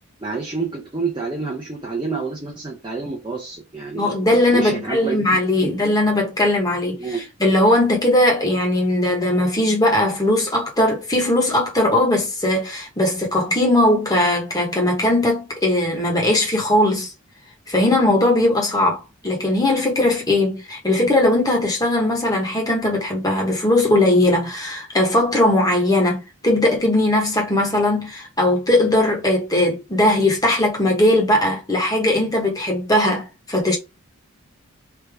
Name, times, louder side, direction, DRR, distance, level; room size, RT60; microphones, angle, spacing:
voice 1, 0.2-4.2 4.5-5.3 5.6-5.7 7.0-7.3, right 4 dB, 20° right, 0.6 m, -28 dB
voice 2, 3.9-17.1 17.7-33.8, left 1 dB, 15° left, 1.1 m, -19 dB
3.4 x 2.7 x 3.4 m
head